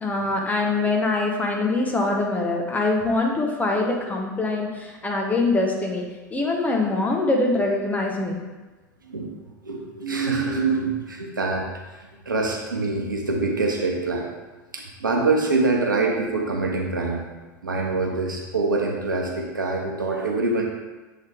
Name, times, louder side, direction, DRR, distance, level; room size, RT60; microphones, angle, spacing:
voice 1, 0.0-6.0 6.3-8.4, left 2 dB, 15° left, 0 dB, 1.1 m, -23 dB
voice 2, 9.6-11.6 12.3-14.3 14.7-17.2 17.6-20.6, right 3 dB, 80° right, 0 dB, 0.9 m, -24 dB
7.8 x 3.8 x 3.5 m, 1.2 s
figure-of-eight pair, 80°, 11 cm